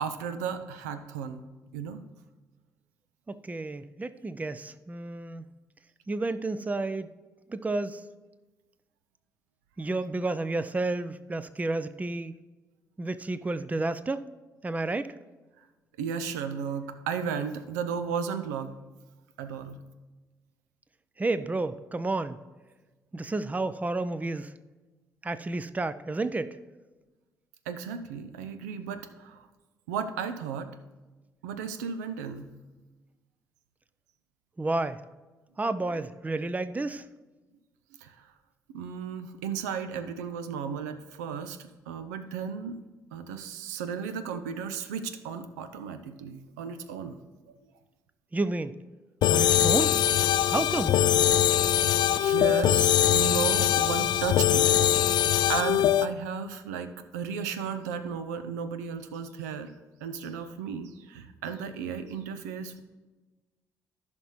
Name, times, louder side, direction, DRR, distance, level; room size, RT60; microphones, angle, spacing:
voice 1, 0.0-1.4 1.7-2.0 16.0-18.7 19.4-19.8 27.7-29.5 29.9-30.7 31.4-32.5 38.0-38.3 38.7-42.8 43.1-47.2 47.5-47.6 52.2-54.7 55.5-59.7 60.0-62.8, right 7 dB, 75° right, 10 dB, 0.5 m, -34 dB
voice 2, 3.3-5.4 6.1-7.1 7.5-8.0 9.8-12.4 13.0-14.2 14.6-15.1 21.2-22.4 23.1-24.5 25.2-26.6 34.6-35.0 35.6-37.0 48.3-48.7 49.3-50.0 50.5-51.0, right 2 dB, 15° right, 14 dB, 0.5 m, -31 dB
sound 1, 49.2-56.1, left 11 dB, 55° left, 0.4 m, -22 dB
14.5 x 5.8 x 3.1 m, 1.2 s
figure-of-eight pair, 40°, 9 cm